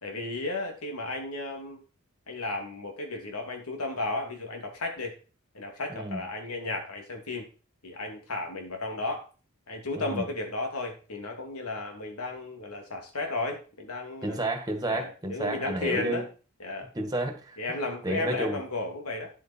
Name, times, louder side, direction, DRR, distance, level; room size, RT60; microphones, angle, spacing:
voice 1, 0.0-1.8 2.3-5.1 5.5-7.5 7.8-9.3 9.7-14.4 14.8-16.2 16.6-16.9 17.6-19.3, left 2 dB, 90° left, 2 dB, 2.9 m, -34 dB
voice 2, 10.0-10.3 14.2-16.2 16.9-17.6 18.0-18.6, right 1 dB, 20° right, 5 dB, 1.9 m, -31 dB
10.0 x 8.1 x 4.5 m, 0.35 s
head